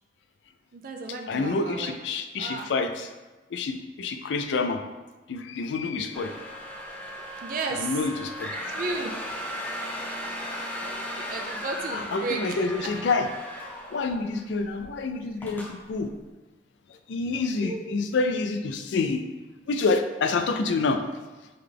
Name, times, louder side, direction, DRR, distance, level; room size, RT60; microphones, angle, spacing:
voice 1, 0.7-1.9 2.4-2.7 5.8-6.1 7.4-7.9 8.7-9.2 10.6-12.9 17.6-17.8, right 3 dB, 50° right, 2 dB, 0.4 m, -34 dB
voice 2, 1.3-3.1 3.5-4.8 5.3-6.4 7.7-8.5 11.9-13.3 13.9-16.2 16.9-19.2 19.7-21.0, left 3 dB, 85° left, 7 dB, 0.4 m, -28 dB
sound 1, 6.1-14.4 14.8-14.9 15.4-15.7, equal, 10° left, 0.7 m, -36 dB
3.8 x 3.2 x 3.4 m, 1.2 s
head